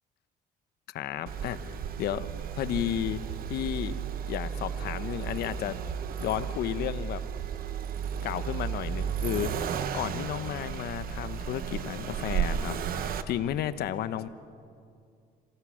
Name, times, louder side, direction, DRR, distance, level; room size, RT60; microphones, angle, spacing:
voice 1, 0.9-2.3 2.5-3.2 3.5-4.0 4.3-5.8 6.2-7.2 8.2-14.3, left 11 dB, 70° left, 13 dB, 1.0 m, -33 dB
Accelerating revving vroom, 1.3-13.2, right 8 dB, 60° right, 1.1 m, -34 dB
27.0 x 17.0 x 6.4 m, 2.3 s
cardioid pair, 110°, 17 cm